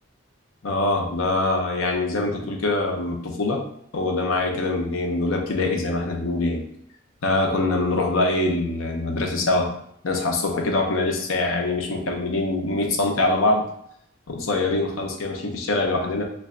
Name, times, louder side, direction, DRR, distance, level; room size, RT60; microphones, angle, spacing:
voice 1, 0.6-3.6 3.9-6.7 7.2-9.7 10.0-13.7 14.3-16.2, left 2 dB, 85° left, 2 dB, 0.7 m, -24 dB
3.3 x 2.2 x 3.8 m, 0.69 s
head